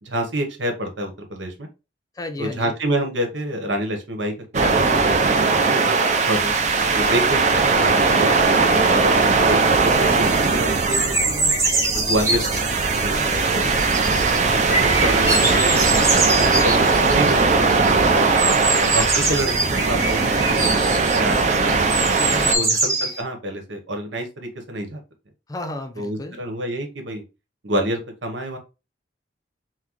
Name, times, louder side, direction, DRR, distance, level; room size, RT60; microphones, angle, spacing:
voice 1, 0.0-1.7 2.4-5.3 6.3-6.5 6.9-11.5 11.9-12.4 12.8-13.7 14.0-14.1 14.7-18.1 18.8-20.2 20.5-21.9 22.5-25.0 26.0-27.2 27.6-28.6, right 1 dB, 85° right, 1.1 m, -28 dB
voice 2, 2.1-2.7 5.3-5.9 13.1-13.8 18.5-19.5 22.3-22.7 25.5-26.4, left 2 dB, 20° left, 0.5 m, -34 dB
sound 1, 4.5-22.5, right 4 dB, 40° right, 0.6 m, -19 dB
sound 2, 10.2-10.5 10.8-12.8 13.3-13.4 13.6-17.4 17.7-23.2, right 2 dB, 15° right, 0.9 m, -24 dB
5.9 x 2.2 x 3.0 m
head